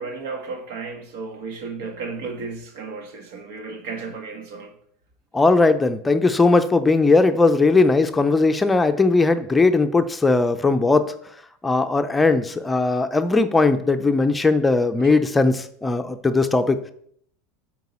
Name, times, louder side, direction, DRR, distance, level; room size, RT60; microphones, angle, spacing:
voice 1, 0.0-4.7, right 4 dB, 75° right, 6 dB, 1.4 m, -33 dB
voice 2, 5.3-11.1 11.6-16.9, left 3 dB, 15° left, 8 dB, 0.6 m, -18 dB
7.9 x 4.6 x 4.3 m, 0.66 s
supercardioid pair, 105°, 0 cm